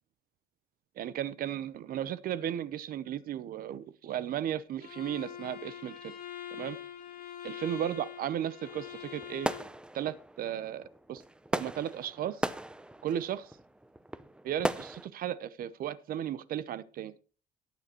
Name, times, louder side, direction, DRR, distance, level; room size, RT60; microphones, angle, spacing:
voice 1, 1.0-6.1 6.5-6.8 7.4-9.5 9.9-11.2 11.5-12.5 13.0-13.5 14.4-17.1, right 10 dB, 60° right, 0.7 m, -35 dB
Bowed string instrument, 4.8-9.7, left 10 dB, 55° left, 2.2 m, -44 dB
sound 1, 8.6-15.1, right 1 dB, 5° right, 0.5 m, -38 dB
18.5 x 6.7 x 3.0 m
cardioid pair, 110°, 17 cm